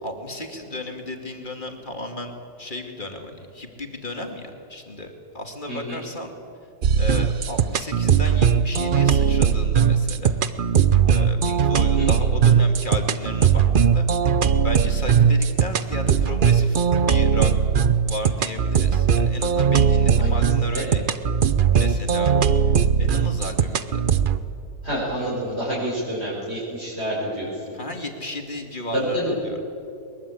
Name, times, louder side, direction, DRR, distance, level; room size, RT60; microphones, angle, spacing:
voice 1, 0.0-6.3 6.9-10.3 11.1-14.1 14.6-17.5 18.0-21.0 21.7-22.4 23.0-24.0 27.7-29.6, left 1 dB, 25° left, 4 dB, 2.4 m, -34 dB
voice 2, 5.7-6.0 12.0-12.1 20.2-20.8 24.8-27.6 28.9-29.3, equal, 35° right, -8 dB, 5.9 m, -28 dB
sound 1, 6.8-24.4, right 7 dB, 75° right, 0.4 m, -19 dB
22.0 x 21.5 x 8.6 m, 2.7 s
omnidirectional pair, 1.9 m